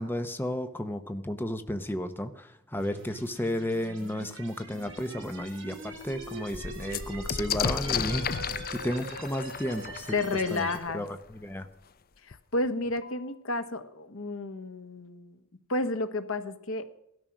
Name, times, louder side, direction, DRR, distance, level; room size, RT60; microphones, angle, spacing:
voice 1, 0.0-10.7 10.9-11.7, left 1 dB, 10° left, 8 dB, 0.8 m, -33 dB
sound 1, 2.8-10.8, right 3 dB, 60° right, 4.9 m, -43 dB
sound 2, 4.9-5.0 5.4-5.5 5.8-11.3 12.3-12.4 12.7-13.3, left 7 dB, 45° left, 0.6 m, -34 dB
voice 2, 10.1-11.0 12.2-15.3 15.7-16.8, left 2 dB, 70° left, 8 dB, 1.4 m, -31 dB
17.5 x 13.0 x 6.1 m, 0.79 s
head